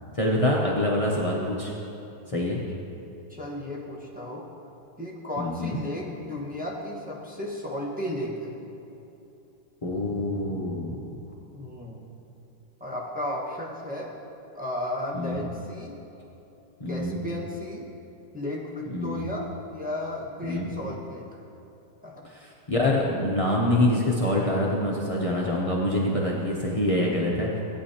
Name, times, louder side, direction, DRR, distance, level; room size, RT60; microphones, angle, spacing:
voice 1, 0.1-1.7 2.3-2.6 5.4-5.8 9.8-11.0 15.1-15.5 16.8-17.2 18.9-19.3 20.4-20.7 22.2-27.6, left 1 dB, 55° left, -3 dB, 0.3 m, -25 dB
voice 2, 3.3-4.5 5.0-8.5 11.5-12.0 12.8-14.1 14.5-16.0 16.9-17.9 18.3-21.3 22.0-22.3, left 1 dB, 5° right, -5 dB, 1.0 m, -34 dB
15.5 x 9.3 x 2.8 m, 2.9 s
omnidirectional pair, 1.9 m